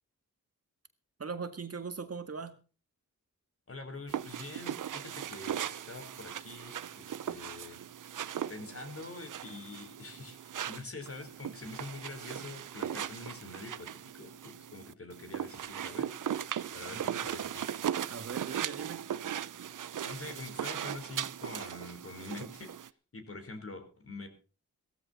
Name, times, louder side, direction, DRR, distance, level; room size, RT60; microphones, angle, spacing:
voice 1, 1.2-2.6 16.8-17.2 18.1-19.1, right 5 dB, 50° right, 9 dB, 1.7 m, -40 dB
voice 2, 3.7-7.8 8.5-16.1 16.7-17.7 20.0-24.3, left 3 dB, 45° left, 6 dB, 3.9 m, -45 dB
sound 1, 4.1-22.9, right 10 dB, 80° right, 0.7 m, -38 dB
16.5 x 14.0 x 4.1 m, 0.37 s
wide cardioid pair, 100°, 31 cm